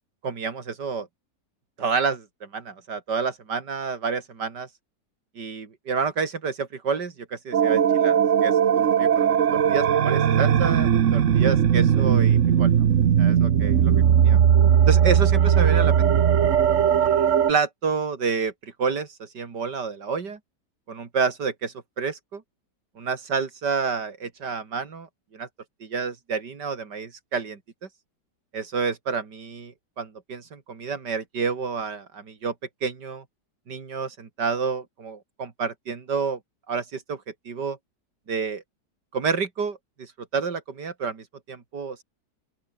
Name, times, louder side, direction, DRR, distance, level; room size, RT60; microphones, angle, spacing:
voice 1, 0.2-1.1 1.8-4.7 5.4-9.3 9.7-12.9 13.2-13.9 14.3-14.4 14.9-16.1 17.0-20.4 20.9-22.4 23.0-25.1 25.3-25.5 25.8-27.9 28.5-32.5 32.8-33.2 33.7-36.4 36.7-37.8 38.3-38.6 39.1-42.0, right 5 dB, 85° right, 3.1 m, -29 dB
sound 1, 7.5-17.5, right 9 dB, 50° right, 1.2 m, -19 dB
open air
omnidirectional pair, 1.8 m